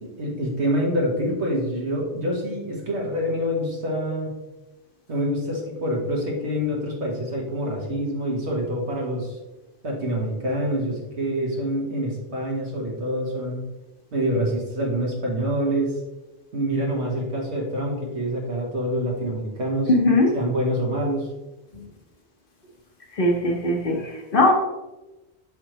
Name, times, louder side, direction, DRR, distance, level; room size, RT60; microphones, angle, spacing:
voice 1, 0.0-4.4 5.1-9.4 9.8-13.6 14.1-15.9 16.5-19.9 20.3-21.3, equal, 75° right, -2 dB, 1.9 m, -26 dB
voice 2, 19.9-20.4 23.2-24.5, left 2 dB, 55° left, 1 dB, 1.2 m, -20 dB
6.5 x 5.5 x 3.1 m, 1.1 s
omnidirectional pair, 1.1 m